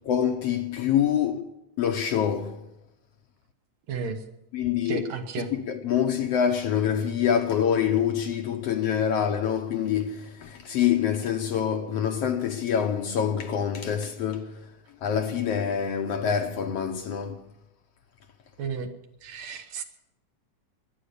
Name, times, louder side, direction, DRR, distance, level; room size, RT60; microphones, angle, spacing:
voice 1, 0.1-1.5 1.8-2.6 4.5-5.0 5.5-14.5 15.0-17.4, left 8 dB, 65° left, 1.8 m, -26 dB
voice 2, 3.9-4.2 4.8-5.5 18.6-18.9 19.2-19.8, right 5 dB, 70° right, 2.5 m, -32 dB
21.5 x 9.8 x 6.8 m
omnidirectional pair, 3.3 m